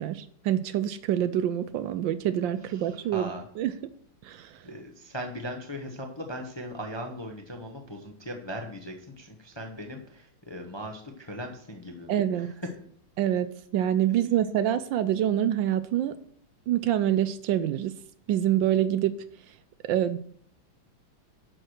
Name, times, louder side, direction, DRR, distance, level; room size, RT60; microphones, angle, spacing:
voice 1, 0.0-3.3 3.6-3.7 4.2-4.6 12.1-12.5 13.2-16.1 16.7-17.9 18.3-19.2 19.9-20.2, right 11 dB, 75° right, 13 dB, 1.2 m, -26 dB
voice 2, 2.6-3.4 4.6-12.7, equal, 20° left, 3 dB, 0.7 m, -39 dB
10.5 x 4.7 x 6.4 m, 0.63 s
omnidirectional pair, 2.2 m